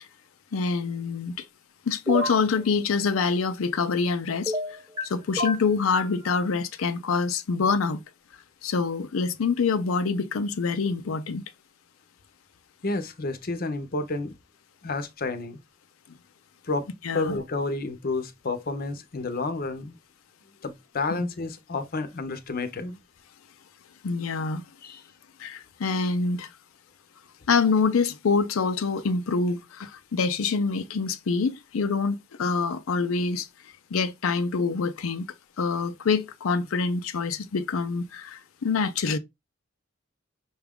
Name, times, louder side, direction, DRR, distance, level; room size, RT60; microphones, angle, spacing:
voice 1, 0.5-1.4 1.9-4.8 5.0-8.0 8.6-11.4 17.0-17.4 21.1-21.2 24.0-24.7 25.4-26.5 27.5-33.5 33.9-35.3 35.6-39.2, left 4 dB, 80° left, 0.5 m, -26 dB
sound 1, 2.1-2.4 4.5-5.0 5.4-6.2, equal, 15° right, 1.1 m, -29 dB
voice 2, 12.8-14.3 14.8-15.6 16.7-16.9 17.1-20.0 20.6-23.0 24.8-25.0, left 3 dB, 45° left, 0.7 m, -30 dB
5.8 x 2.4 x 3.5 m
head